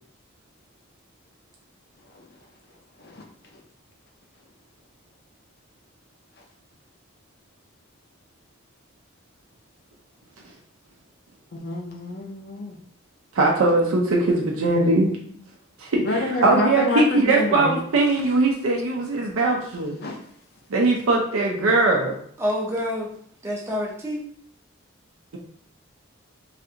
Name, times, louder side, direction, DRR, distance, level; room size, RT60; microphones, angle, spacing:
voice 1, 11.5-12.7 16.0-17.8 20.0-20.2, left 2 dB, 45° left, 1 dB, 0.5 m, -27 dB
voice 2, 13.3-15.1 15.8-20.0 20.7-22.2, right 2 dB, 80° right, -1 dB, 0.5 m, -20 dB
voice 3, 22.4-23.1 23.4-24.3, left 1 dB, 10° right, -3 dB, 0.5 m, -27 dB
3.2 x 2.5 x 2.7 m, 0.64 s
head